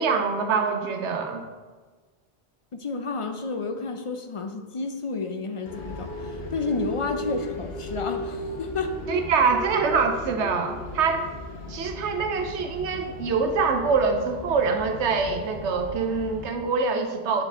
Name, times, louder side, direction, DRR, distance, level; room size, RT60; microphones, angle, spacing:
voice 1, 0.0-1.4 9.1-11.2 11.7-17.4, right 5 dB, 90° right, 5 dB, 1.0 m, -24 dB
voice 2, 2.7-8.9, left 3 dB, 45° left, 6 dB, 0.4 m, -31 dB
sound 1, 5.6-16.5, left 1 dB, 65° left, 1.2 m, -36 dB
8.5 x 5.3 x 3.7 m, 1.4 s
omnidirectional pair, 1.1 m